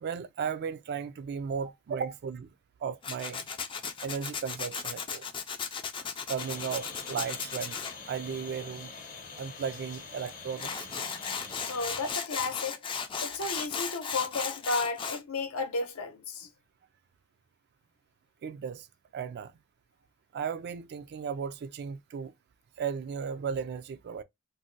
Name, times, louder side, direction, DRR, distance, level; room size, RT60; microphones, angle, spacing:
voice 1, 0.0-2.5 2.8-3.5 4.0-5.3 6.3-7.8 8.1-8.9 9.4-10.9 18.4-18.9 19.1-19.5 20.3-22.3 22.8-24.2, right 6 dB, 50° right, 0.3 m, -35 dB
Tools, 3.0-7.9 10.3-10.4 10.6-15.2, left 6 dB, 25° left, 0.4 m, -36 dB
sound 1, 6.4-12.1, left 4 dB, 40° left, 0.8 m, -45 dB
voice 2, 11.7-12.8 13.2-16.5, left 3 dB, 80° left, 0.7 m, -33 dB
2.6 x 2.1 x 3.7 m
head